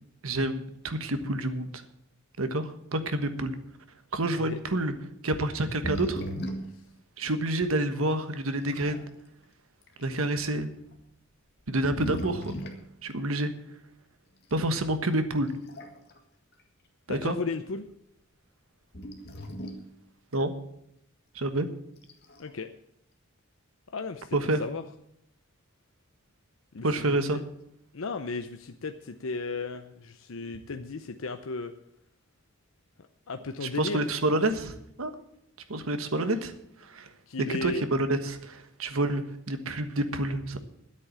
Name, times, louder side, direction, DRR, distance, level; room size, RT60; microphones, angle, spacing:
voice 1, 0.2-1.8 2.4-3.5 4.1-4.9 5.2-6.2 7.2-9.1 10.0-10.7 11.7-12.6 13.0-13.5 14.5-15.5 17.1-17.3 20.3-20.5 21.3-21.7 24.3-24.6 26.8-27.4 33.6-35.1 35.7-36.5 36.8-37.1 37.6-40.6, right 1 dB, 85° right, 9 dB, 1.4 m, -28 dB
sound 1, 5.6-6.8 7.6-7.7 8.4-9.1 9.8-10.0 10.9-11.0 11.6-12.9 14.5-14.7 15.5-16.2 16.5-16.6 18.9-19.9 22.0-22.5, equal, 50° left, 1.8 m, -37 dB
voice 2, 17.1-17.8 22.4-22.7 23.9-24.8 26.7-27.2 27.9-31.7 33.3-34.1 37.3-37.8, left 4 dB, 75° left, 7 dB, 0.7 m, -35 dB
10.0 x 8.4 x 8.7 m, 0.76 s
head